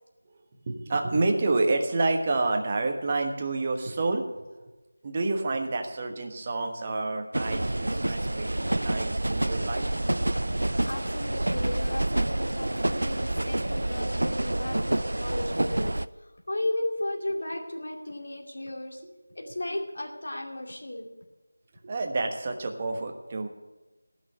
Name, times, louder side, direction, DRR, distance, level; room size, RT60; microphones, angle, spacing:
voice 1, 0.7-4.2 4.6-4.7 5.0-9.9 19.0-19.1 19.4-19.7 21.8-23.5, right 3 dB, 25° right, 3 dB, 1.2 m, -29 dB
sound 1, 7.3-16.1, right 1 dB, 65° right, 0.4 m, -28 dB
voice 2, 10.9-15.9 16.2-19.0 19.3-21.1, left 1 dB, 60° left, 2 dB, 2.4 m, -34 dB
14.0 x 6.3 x 9.4 m, 1.1 s
figure-of-eight pair, 170°, 0 cm